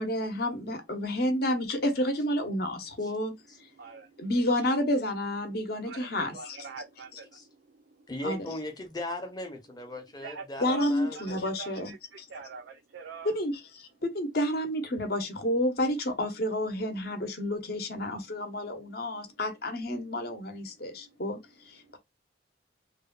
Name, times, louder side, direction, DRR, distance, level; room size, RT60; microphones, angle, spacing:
voice 1, 0.0-3.3 4.2-6.6 8.2-8.5 10.6-12.3 13.2-22.0, left 1 dB, 50° left, 0.8 m, -30 dB
voice 2, 3.7-4.2 5.8-8.1 10.2-10.9 11.1-13.3 20.9-21.2 21.8-22.0, right 4 dB, 60° right, 0.4 m, -45 dB
voice 3, 8.1-11.4, left 1 dB, 20° left, 0.6 m, -38 dB
3.1 x 2.2 x 2.3 m
head